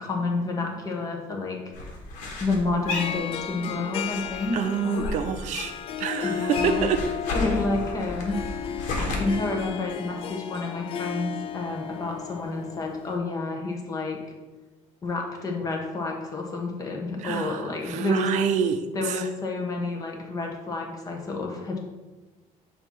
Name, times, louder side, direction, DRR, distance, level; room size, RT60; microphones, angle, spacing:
voice 1, 0.0-1.6 2.4-4.6 6.2-6.8 7.3-8.4 9.0-14.2 15.0-18.3 18.9-21.8, left 3 dB, 30° left, 1 dB, 1.0 m, -29 dB
sound 1, 1.7-3.8 4.1-5.9 6.2-9.2, left 3 dB, 80° left, 1.3 m, -33 dB
Harp, 2.8-13.2, left 8 dB, 45° left, 0.4 m, -34 dB
voice 2, 4.5-5.7 6.0-7.0 9.0-9.2 17.2-19.3, right 7 dB, 70° right, 9 dB, 0.5 m, -27 dB
7.0 x 2.8 x 5.7 m, 1.2 s
cardioid pair, 155°, 13 cm